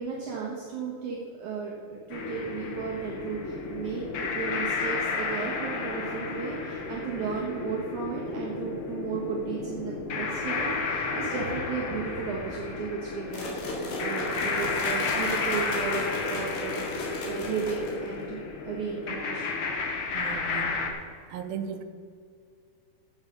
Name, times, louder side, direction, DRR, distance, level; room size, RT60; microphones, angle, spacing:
voice 1, 0.0-19.6, right 5 dB, 65° right, -4 dB, 2.6 m, -35 dB
sound 1, 2.1-20.9, left 4 dB, 60° left, 1.5 m, -32 dB
sound 2, 13.3-18.2, left 1 dB, 85° left, 3.9 m, -35 dB
voice 2, 20.1-20.8 21.3-21.8, right 6 dB, 80° right, 7 dB, 2.6 m, -36 dB
13.0 x 8.1 x 5.3 m, 2.2 s
omnidirectional pair, 4.2 m